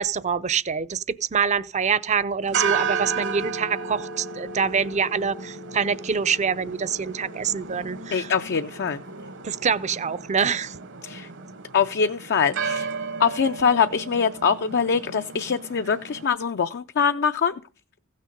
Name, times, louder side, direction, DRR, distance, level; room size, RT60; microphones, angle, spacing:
voice 1, 0.0-8.3 9.4-10.8, right 6 dB, 35° right, 0.5 m, -25 dB
sound 1, 2.4-16.2, right 5 dB, 60° right, 1.0 m, -33 dB
voice 2, 8.1-9.0 11.0-11.3 11.7-12.9 13.2-17.5, left 6 dB, 55° left, 0.5 m, -23 dB
15.5 x 6.5 x 5.1 m
head